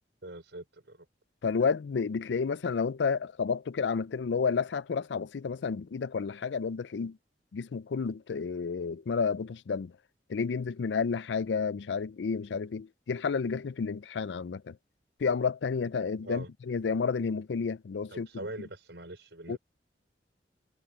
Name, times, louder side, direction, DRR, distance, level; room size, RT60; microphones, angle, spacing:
voice 1, 0.2-1.1 16.2-16.5 18.1-19.6, right 2 dB, 85° right, 5.3 m, -43 dB
voice 2, 1.4-7.2 7.5-9.9 10.3-14.8 15.2-18.3 19.5-19.6, left 5 dB, 80° left, 0.4 m, -31 dB
head